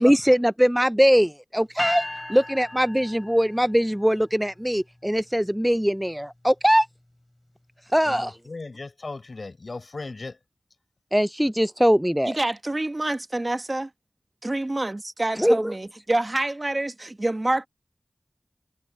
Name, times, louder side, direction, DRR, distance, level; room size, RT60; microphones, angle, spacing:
voice 1, 0.0-6.9 7.9-8.4 11.1-12.4 15.4-15.7, equal, 5° right, 0.4 m, -21 dB
sound 1, 1.8-3.9, left 1 dB, 25° left, 6.5 m, -34 dB
voice 2, 8.0-10.4, left 3 dB, 70° left, 6.7 m, -37 dB
voice 3, 12.3-13.9 14.4-17.7, right 2 dB, 40° right, 1.3 m, -27 dB
wide cardioid pair, 45°, 0 cm